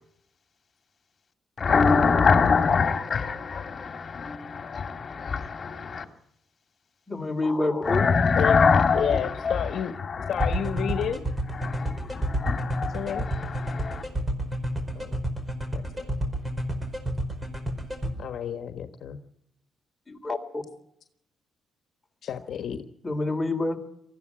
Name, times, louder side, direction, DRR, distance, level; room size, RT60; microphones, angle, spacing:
voice 1, 1.6-6.0 7.8-11.1 11.5-14.0, left 5 dB, 40° left, 2.6 m, -24 dB
voice 2, 7.1-8.0 20.1-20.6 23.0-23.8, left 2 dB, 20° left, 3.3 m, -27 dB
voice 3, 8.9-11.2 12.9-13.3 14.9-15.2 15.7-16.1 18.2-19.2 22.2-22.8, left 8 dB, 65° left, 1.4 m, -31 dB
sound 1, 10.4-18.1, right 1 dB, 15° right, 4.8 m, -29 dB
20.0 x 14.5 x 9.9 m
cardioid pair, 90°, 0 cm